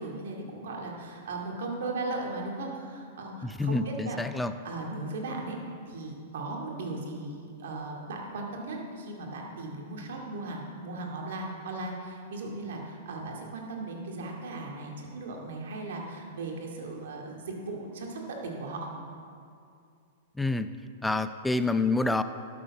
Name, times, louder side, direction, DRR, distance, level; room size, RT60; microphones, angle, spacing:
voice 1, 0.0-5.6 5.9-7.3 7.6-18.9, right 2 dB, 70° right, 0 dB, 2.2 m, -37 dB
voice 2, 3.4-4.5 20.4-20.7 21.0-22.2, left 2 dB, 5° left, 11 dB, 0.5 m, -27 dB
12.0 x 7.0 x 6.1 m, 2.4 s
hypercardioid pair, 110°, 0 cm